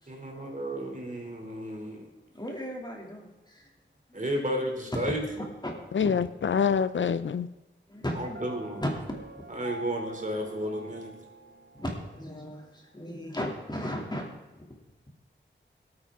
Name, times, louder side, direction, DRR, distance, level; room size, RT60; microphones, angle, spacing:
voice 1, 0.1-2.1 4.1-5.2 8.1-8.8 9.5-11.2, equal, 40° right, 1 dB, 2.8 m, -33 dB
voice 2, 2.3-3.7 4.1-4.4 5.6-5.7 6.0-6.4 7.9-8.4 8.8-8.9 9.3-9.4 11.7-14.3 14.5-14.8, equal, 20° left, 0 dB, 2.6 m, -36 dB
voice 3, 5.9-7.5, left 6 dB, 75° left, 14 dB, 0.4 m, -26 dB
Piano, 8.3-12.2, right 2 dB, 80° right, 1.0 m, -45 dB
18.0 x 8.7 x 3.6 m, 1.1 s
wide cardioid pair, 75°, 20 cm